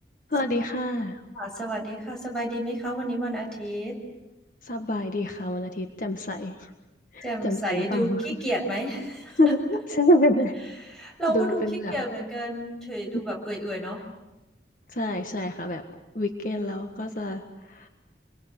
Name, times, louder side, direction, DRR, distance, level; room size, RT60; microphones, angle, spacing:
voice 1, 0.3-1.2 4.6-6.7 7.1-8.2 9.4-10.5 11.3-12.0 14.9-15.8 16.1-17.9, left 1 dB, 50° left, 5 dB, 1.6 m, -26 dB
voice 2, 1.3-4.0 7.2-9.6 10.8-11.6 11.9-14.1, equal, 5° left, -1 dB, 7.1 m, -31 dB
28.5 x 23.0 x 8.2 m, 1.0 s
head